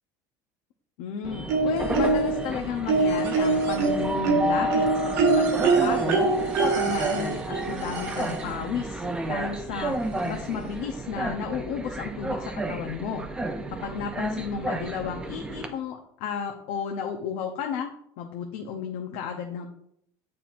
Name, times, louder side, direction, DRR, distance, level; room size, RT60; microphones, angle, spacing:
voice 1, 1.0-6.2 6.6-13.2 13.7-17.9 18.2-19.7, left 7 dB, 70° left, 2 dB, 0.7 m, -33 dB
Train, 1.2-15.7, right 2 dB, 10° right, 0.5 m, -32 dB
sound 1, 1.5-2.4 2.9-8.6 9.8-9.9 10.2-10.3, right 3 dB, 90° right, 1.3 m, -24 dB
8.7 x 4.3 x 2.5 m, 0.71 s
cardioid pair, 165°, 9 cm